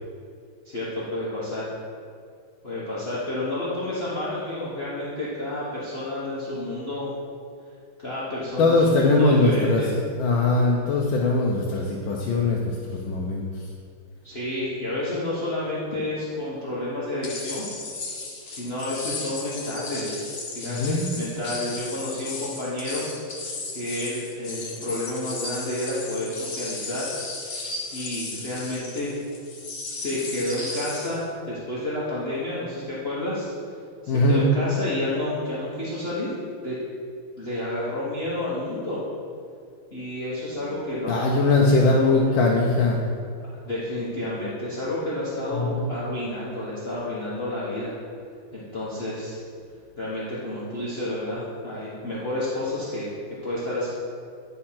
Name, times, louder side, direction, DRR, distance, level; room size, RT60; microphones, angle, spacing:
voice 1, 0.6-1.7 2.6-7.1 8.0-9.9 14.2-17.7 18.5-23.0 23.4-23.5 23.7-27.1 27.9-29.2 29.9-33.5 34.0-36.3 36.6-36.8 37.4-39.0 39.9-42.2 43.6-48.0 48.5-49.4 50.0-53.1 53.4-53.9, left 1 dB, 30° left, -9 dB, 1.4 m, -30 dB
voice 2, 8.6-9.8 10.2-13.4 20.7-21.2 34.1-34.5 41.1-43.1 45.6-45.9, left 2 dB, 70° left, -2 dB, 1.4 m, -21 dB
sound 1, 17.2-31.2, left 3 dB, 50° left, 1.6 m, -35 dB
10.5 x 4.3 x 5.8 m, 2.3 s
omnidirectional pair, 2.4 m